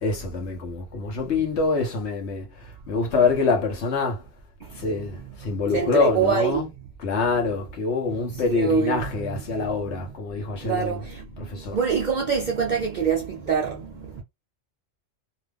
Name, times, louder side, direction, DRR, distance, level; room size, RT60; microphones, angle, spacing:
voice 1, 0.0-4.2 4.8-6.7 7.0-11.0 11.4-11.8, left 4 dB, 60° left, 1.2 m, -25 dB
voice 2, 4.6-6.6 8.3-10.2 10.5-14.2, right 7 dB, 60° right, 0.5 m, -27 dB
2.8 x 2.3 x 3.3 m
omnidirectional pair, 1.3 m